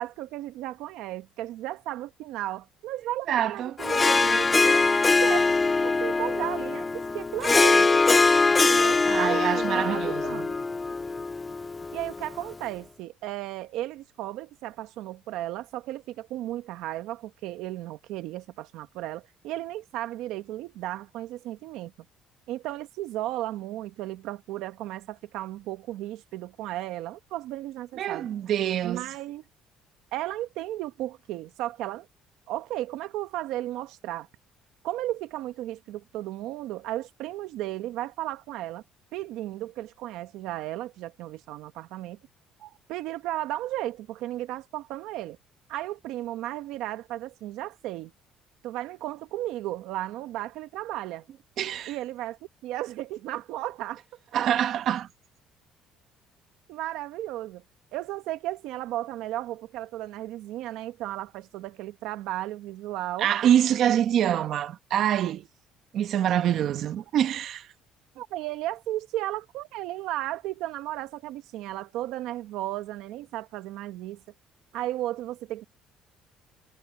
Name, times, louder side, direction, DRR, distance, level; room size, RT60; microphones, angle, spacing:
voice 1, 0.0-4.9 5.2-5.5 5.8-7.9 8.6-10.6 11.9-21.9 22.5-28.2 28.8-29.4 30.1-32.1 32.5-34.3 34.8-38.8 39.1-42.2 42.9-45.4 45.7-48.1 48.6-51.2 51.9-54.0 56.7-57.6 57.9-63.3 63.9-64.0 66.3-66.5 68.1-74.2 74.7-75.6, right 14 dB, 80° right, 0.9 m, -34 dB
voice 2, 3.3-3.8 9.0-10.4 28.0-29.0 42.6-42.7 51.6-52.0 54.3-55.1 63.2-65.5 65.9-67.7, right 10 dB, 55° right, 1.0 m, -25 dB
Harp, 3.8-12.4, left 3 dB, 20° left, 0.3 m, -23 dB
cardioid pair, 140°, 0 cm